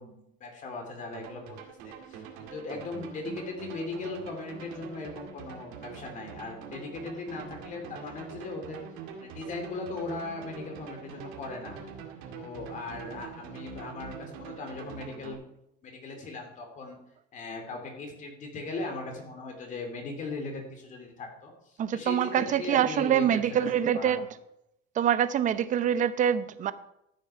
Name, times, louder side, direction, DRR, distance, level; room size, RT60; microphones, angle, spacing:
voice 1, 0.0-1.6 1.8-8.8 9.2-11.8 12.3-15.4 15.8-17.0 17.3-23.7 23.9-24.2, left 3 dB, 40° left, 3 dB, 2.8 m, -38 dB
sound 1, 1.1-15.3, right 6 dB, 90° right, 2.2 m, -44 dB
voice 2, 21.8-24.3 25.0-26.7, right 9 dB, 40° right, 14 dB, 0.7 m, -25 dB
13.5 x 6.7 x 5.7 m, 0.80 s
cardioid pair, 150°, 21 cm